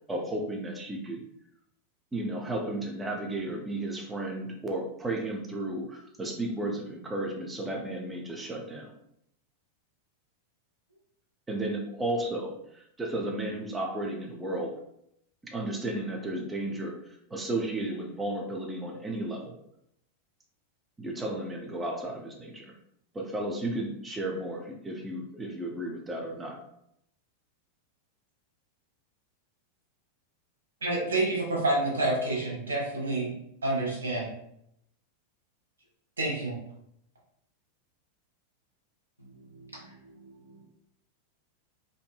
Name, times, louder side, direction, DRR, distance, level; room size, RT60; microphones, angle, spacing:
voice 1, 0.1-1.2 2.1-8.9 11.5-14.8 15.4-19.6 21.0-22.7 23.1-26.6, right 1 dB, 15° right, 1 dB, 0.4 m, -33 dB
voice 2, 30.8-33.3 33.6-34.3 36.2-36.6, right 2 dB, 70° right, -3 dB, 1.0 m, -28 dB
voice 3, 39.2-40.6, right 2 dB, 90° right, -3 dB, 0.4 m, -51 dB
2.6 x 2.5 x 2.2 m, 0.76 s
figure-of-eight pair, 90°, 0 cm